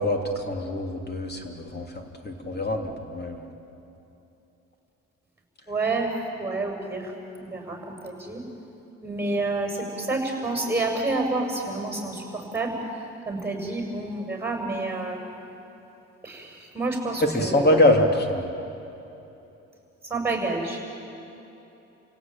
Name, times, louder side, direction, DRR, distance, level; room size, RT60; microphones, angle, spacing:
voice 1, 0.0-3.4 17.2-18.5, left 1 dB, 35° left, 3 dB, 3.2 m, -24 dB
voice 2, 5.7-6.1 6.4-7.1 7.4-8.4 9.0-12.8 13.3-15.2 16.2-17.9 20.0-20.8, right 2 dB, 10° right, 3 dB, 6.9 m, -29 dB
29.5 x 17.5 x 9.0 m, 2.9 s
cardioid pair, 90°, 30 cm